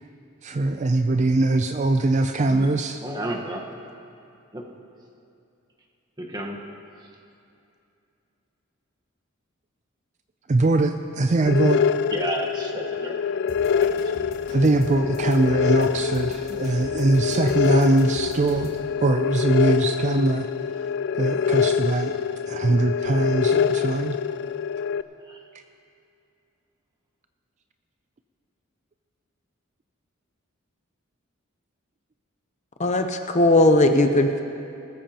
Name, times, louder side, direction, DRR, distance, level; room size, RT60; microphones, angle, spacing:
voice 1, 0.4-3.0 10.5-11.8 14.5-18.7 19.0-20.5 21.2-22.1 22.5-24.2, right 2 dB, 35° right, 7 dB, 0.4 m, -22 dB
voice 2, 3.0-3.6 4.5-4.7 6.2-6.6 12.1-13.2 13.8-14.3 25.3-25.4, right 1 dB, 20° right, 0 dB, 1.2 m, -32 dB
sound 1, 11.5-25.0, left 7 dB, 55° left, 0.3 m, -25 dB
sound 2, 13.5-18.8, equal, 85° left, 3.4 m, -42 dB
voice 3, 32.8-34.4, left 2 dB, 35° left, 6 dB, 0.7 m, -18 dB
20.0 x 14.0 x 2.9 m, 2.6 s
head